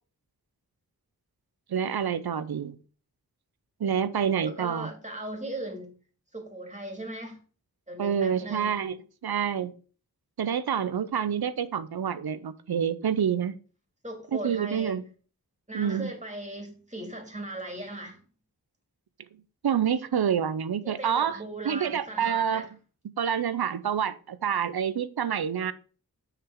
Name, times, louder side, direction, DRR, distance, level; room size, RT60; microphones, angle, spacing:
voice 1, 1.7-2.8 3.8-4.9 8.0-9.0 9.2-9.7 10.4-13.5 14.3-15.0 15.7-16.1 19.6-21.4 21.6-22.7 23.2-25.7, right 8 dB, 80° right, 0.6 m, -27 dB
voice 2, 4.5-6.0 6.3-7.4 7.9-8.8 14.0-15.0 15.7-18.2 20.8-22.7, right 1 dB, 20° right, 2.4 m, -38 dB
6.7 x 5.8 x 4.5 m
wide cardioid pair, 55°, 37 cm